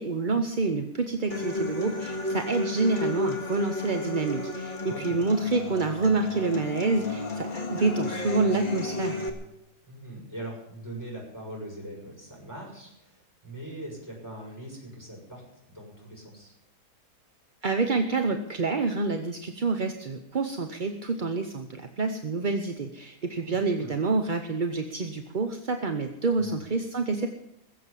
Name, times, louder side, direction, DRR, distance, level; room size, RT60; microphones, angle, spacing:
voice 1, 0.0-9.2 17.6-27.3, right 3 dB, 40° right, 6 dB, 0.8 m, -28 dB
Human voice / Acoustic guitar, 1.3-9.3, left 2 dB, 30° left, 2.0 m, -32 dB
voice 2, 4.8-5.2 9.8-16.5 23.4-23.9 26.4-26.6, right 1 dB, 10° right, -2 dB, 6.3 m, -41 dB
20.5 x 7.7 x 8.4 m, 0.81 s
omnidirectional pair, 1.7 m